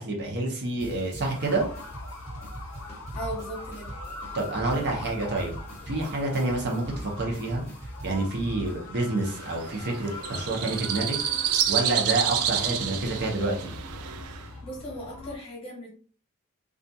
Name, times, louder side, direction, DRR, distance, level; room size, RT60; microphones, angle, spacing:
voice 1, 0.0-1.7 4.3-5.6 5.9-7.6 8.0-11.2 11.7-13.7, right 2 dB, 50° right, 1 dB, 0.7 m, -28 dB
sound 1, 0.8-9.0, right 1 dB, 15° right, 1.1 m, -41 dB
sound 2, 1.3-15.4, left 2 dB, 75° left, 0.5 m, -42 dB
voice 2, 3.1-3.9 14.6-16.0, equal, 25° left, -3 dB, 1.0 m, -37 dB
sound 3, 9.3-14.5, right 9 dB, 75° right, 0.3 m, -29 dB
2.4 x 2.3 x 2.6 m, 0.43 s
head